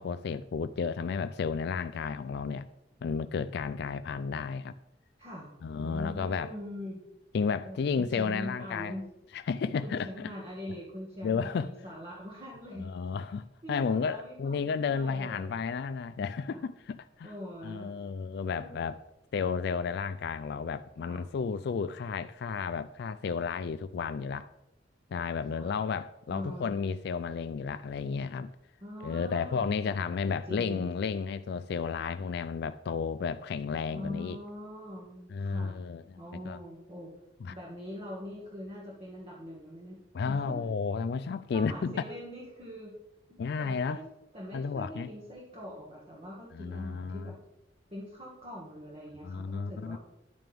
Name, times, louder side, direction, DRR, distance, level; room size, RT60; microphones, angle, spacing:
voice 1, 0.0-2.7 3.0-4.7 5.6-6.5 7.3-9.0 9.3-10.3 11.2-11.7 12.8-17.3 17.6-19.0 19.3-24.5 25.1-28.5 29.0-34.4 35.3-36.2 36.5-36.6 37.4-37.6 40.1-41.9 43.4-44.0 44.5-45.1 46.5-47.3 49.2-50.0, left 5 dB, 60° left, 0.3 m, -32 dB
voice 2, 5.2-5.5 5.8-7.0 7.6-9.1 9.8-12.9 13.6-15.6 16.5-16.6 17.2-17.9 18.5-18.8 21.0-21.2 25.5-25.7 26.3-26.8 28.8-30.9 33.9-35.8 36.2-37.1 37.5-40.7 41.5-42.9 43.3-44.0 44.3-47.4 47.9-50.0, equal, 30° right, 1.9 m, -43 dB
10.5 x 9.1 x 3.5 m
head